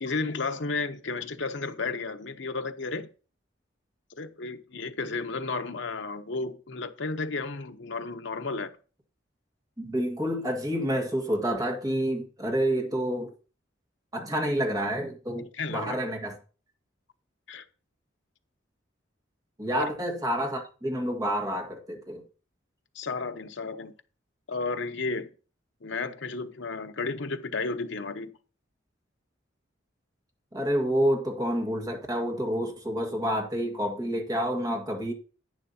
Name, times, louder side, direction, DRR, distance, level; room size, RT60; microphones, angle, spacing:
voice 1, 0.0-3.1 4.2-8.7 15.5-16.0 17.5-17.6 19.7-19.9 22.9-23.9 24.5-25.3 25.8-28.3, left 3 dB, 70° left, 0.9 m, -33 dB
voice 2, 9.8-13.3 14.1-16.4 19.6-22.2 30.5-35.1, equal, 20° right, 1.8 m, -28 dB
10.5 x 9.6 x 2.8 m
head